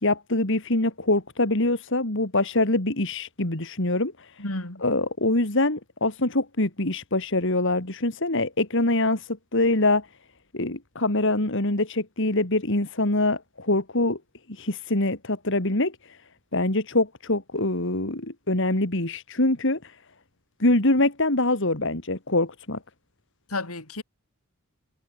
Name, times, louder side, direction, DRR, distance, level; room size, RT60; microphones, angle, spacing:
voice 1, 0.0-4.3 4.8-10.1 10.5-14.2 14.5-16.0 16.5-19.9 20.6-22.8, left 2 dB, 60° left, 3.0 m, -24 dB
voice 2, 4.4-4.8 23.5-24.0, left 2 dB, 85° left, 5.2 m, -31 dB
head